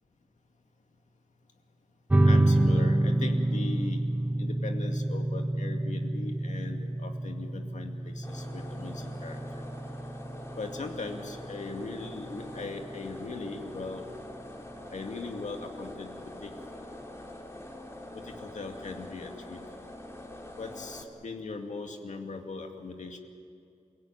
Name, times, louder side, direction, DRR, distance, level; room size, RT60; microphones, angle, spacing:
sound 1, 2.1-13.1, right 1 dB, 10° right, 0.6 m, -28 dB
voice 1, 2.2-4.1 4.4-9.6 10.6-14.1 14.9-16.5 18.1-19.6 20.6-23.2, left 3 dB, 70° left, 3 dB, 2.3 m, -39 dB
sound 2, 8.2-21.0, left 1 dB, 20° left, 2.6 m, -44 dB
28.5 x 17.5 x 9.1 m, 2.5 s
wide cardioid pair, 145°, 13 cm